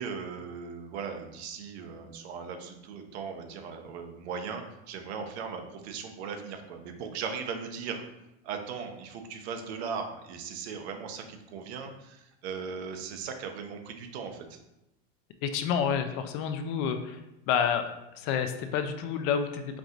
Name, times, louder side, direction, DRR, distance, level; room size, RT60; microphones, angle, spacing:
voice 1, 0.0-8.0 8.4-14.6, right 6 dB, 80° right, 5 dB, 0.9 m, -38 dB
voice 2, 15.4-17.2 17.5-19.8, left 7 dB, 45° left, 8 dB, 0.4 m, -29 dB
4.7 x 2.4 x 3.9 m, 0.91 s
supercardioid pair, 150°, 32 cm